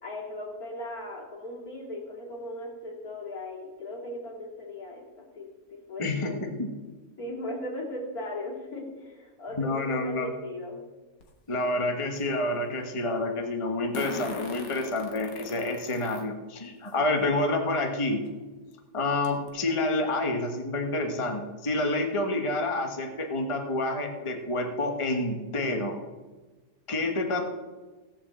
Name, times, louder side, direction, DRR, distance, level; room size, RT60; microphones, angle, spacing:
voice 1, 0.0-6.4 7.2-10.8 15.8-15.9, left 1 dB, 55° left, -9 dB, 3.0 m, -38 dB
voice 2, 6.0-6.7 9.6-10.3 11.5-18.2 18.9-25.9 26.9-27.4, left 2 dB, 20° left, 4 dB, 1.1 m, -28 dB
Fart, 11.2-11.3 13.9-16.2 16.9-17.0 18.3-18.4 18.7-18.8 19.2-19.5, left 4 dB, 85° left, 2.1 m, -39 dB
16.5 x 5.7 x 7.4 m, 1.2 s
omnidirectional pair, 1.8 m